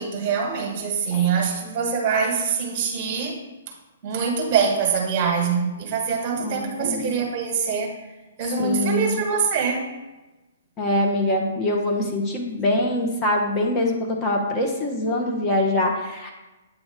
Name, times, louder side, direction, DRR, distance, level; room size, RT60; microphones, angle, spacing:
voice 1, 0.0-3.4 4.0-7.9 8.4-9.8, right 6 dB, 35° right, 1 dB, 1.4 m, -24 dB
voice 2, 6.4-7.2 8.6-9.2 10.8-16.3, left 1 dB, 20° left, 0 dB, 1.0 m, -24 dB
8.5 x 3.1 x 5.0 m, 1.1 s
figure-of-eight pair, 125°, 0 cm